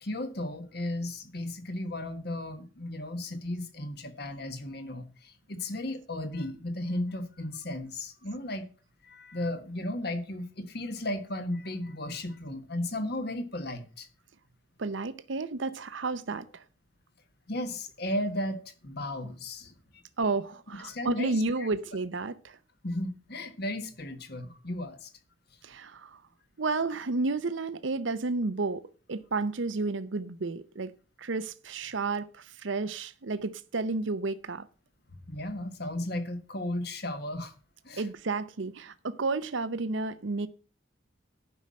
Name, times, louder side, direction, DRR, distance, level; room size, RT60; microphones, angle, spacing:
voice 1, 0.0-8.7 9.0-14.1 17.5-19.7 20.8-21.7 22.8-25.1 35.3-37.5 37.8-38.1, left 1 dB, 50° left, 1.6 m, -35 dB
voice 2, 14.8-16.6 20.2-22.6 25.6-26.2 26.6-28.8 29.1-30.9 31.2-34.7 38.0-40.5, right 3 dB, 70° right, 0.7 m, -31 dB
10.5 x 5.6 x 7.6 m
head